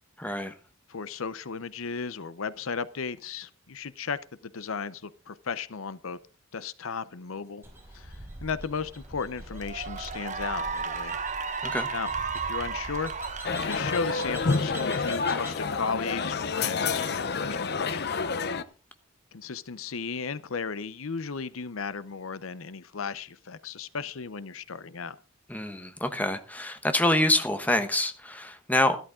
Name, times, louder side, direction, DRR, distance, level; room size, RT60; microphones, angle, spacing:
voice 1, 0.2-0.5 11.6-11.9 25.5-29.0, left 1 dB, 10° left, 1.2 m, -26 dB
voice 2, 0.9-6.2 6.5-7.6 7.9-11.2 11.9-18.2 19.3-25.2, left 5 dB, 85° left, 0.7 m, -35 dB
sound 1, 7.6-15.6, right 1 dB, 10° right, 5.3 m, -44 dB
Cheering / Applause, 8.8-9.0 9.5-16.0, right 5 dB, 35° right, 1.3 m, -35 dB
sound 2, 13.4-18.6, left 4 dB, 50° left, 0.8 m, -29 dB
14.0 x 12.5 x 3.8 m
head